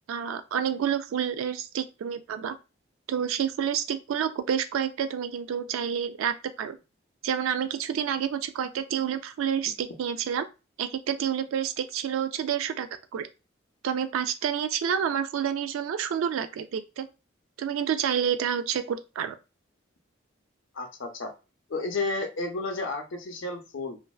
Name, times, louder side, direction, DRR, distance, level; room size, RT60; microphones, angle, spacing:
voice 1, 0.1-2.6 3.1-6.8 7.2-10.5 10.8-13.3 13.8-17.1 17.6-19.4, right 8 dB, 85° right, 11 dB, 0.3 m, -29 dB
voice 2, 20.7-21.3 21.7-24.0, left 3 dB, 70° left, 4 dB, 0.6 m, -32 dB
2.5 x 2.1 x 2.3 m, 0.29 s
head